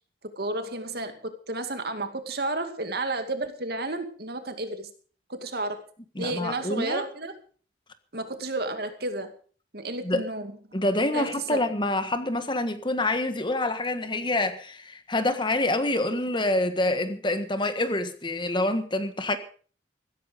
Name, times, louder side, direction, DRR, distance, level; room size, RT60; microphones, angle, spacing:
voice 1, 0.4-4.9 5.3-5.8 6.2-7.4 8.1-9.3 9.7-10.5 11.1-11.6, right 2 dB, 60° right, 2.3 m, -32 dB
voice 2, 6.1-7.0 10.0-10.2 10.7-19.4, left 2 dB, 25° left, 1.5 m, -26 dB
15.5 x 14.0 x 5.2 m
head